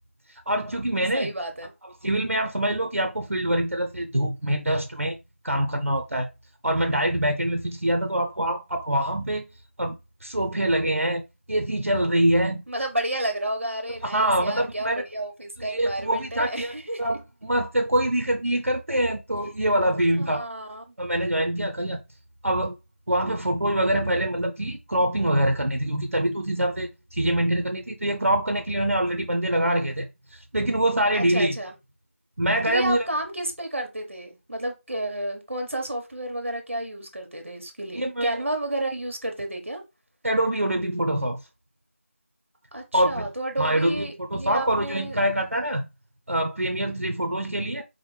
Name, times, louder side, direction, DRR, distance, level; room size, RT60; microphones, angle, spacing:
voice 1, 0.3-1.3 2.0-5.2 5.4-6.3 6.6-9.5 9.8-9.9 10.2-11.2 11.5-12.6 14.0-15.0 15.6-16.7 17.0-20.4 21.0-22.0 22.4-22.8 23.1-31.6 32.4-33.0 37.9-38.4 40.2-41.4 42.9-43.3 43.6-45.9 46.3-47.8, right 1 dB, 90° right, 0.6 m, -24 dB
voice 2, 1.1-1.7 12.7-17.2 19.3-19.4 20.1-20.9 31.1-31.7 32.6-39.8 42.7-45.2, right 1 dB, 60° right, 1.2 m, -31 dB
4.9 x 2.1 x 3.3 m
figure-of-eight pair, 175°, 7 cm